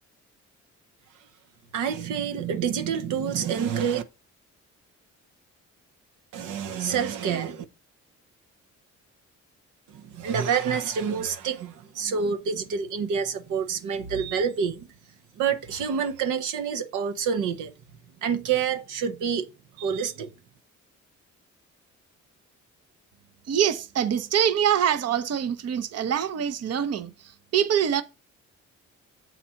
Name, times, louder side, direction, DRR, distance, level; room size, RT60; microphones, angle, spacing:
voice 1, 1.7-4.0 6.3-7.6 9.9-14.9 15.4-17.7 18.2-19.5 19.8-20.3, right 7 dB, 85° right, 1.0 m, -27 dB
voice 2, 23.5-28.0, right 9 dB, 55° right, 0.8 m, -25 dB
7.5 x 4.2 x 5.6 m
cardioid pair, 90°, 30 cm